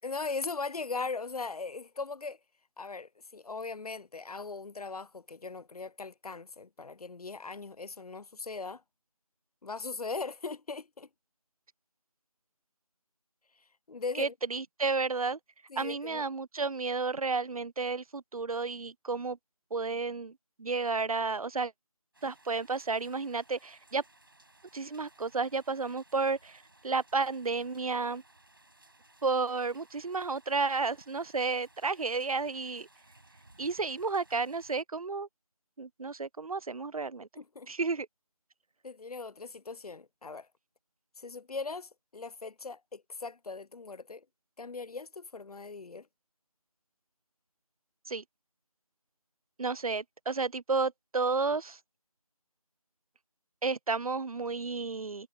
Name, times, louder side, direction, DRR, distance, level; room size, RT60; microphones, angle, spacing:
voice 1, 0.0-2.4 2.8-8.8 9.6-11.1 13.9-14.3 15.7-16.2 37.4-37.7 38.8-40.5 41.2-44.2 44.6-46.1, left 4 dB, 80° left, 0.6 m, -39 dB
voice 2, 14.2-15.4 15.8-19.4 19.7-21.7 22.2-24.0 24.7-28.2 29.2-32.9 33.6-35.3 35.8-37.3 37.7-38.1 48.1-48.2 49.6-51.8 53.6-55.3, right 4 dB, 70° right, 0.5 m, -32 dB
sound 1, 22.1-34.8, right 2 dB, 35° right, 5.5 m, -61 dB
figure-of-eight pair, 180°, 19 cm